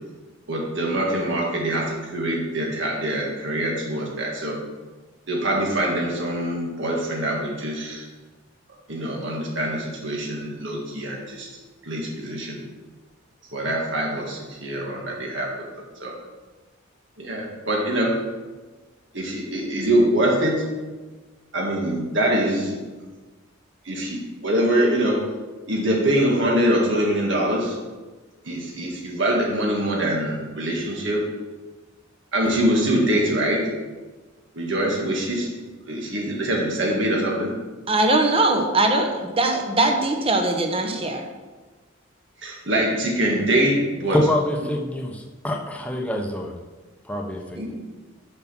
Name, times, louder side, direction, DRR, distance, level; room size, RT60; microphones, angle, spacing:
voice 1, 0.5-4.6 5.3-8.0 8.9-11.5 11.8-12.6 13.5-15.5 16.0-16.1 17.2-18.1 19.1-20.6 21.5-22.8 23.8-25.2 25.7-27.8 28.4-31.2 32.3-33.6 34.5-35.5 35.9-37.5 42.4-44.2 47.5-47.7, right 1 dB, 70° right, -2 dB, 1.8 m, -24 dB
voice 2, 37.9-41.2 47.6-47.7, right 2 dB, 30° right, 3 dB, 1.0 m, -21 dB
voice 3, 44.1-46.5 47.1-47.7, left 1 dB, 5° left, 2 dB, 0.8 m, -26 dB
7.3 x 5.9 x 6.1 m, 1.3 s
head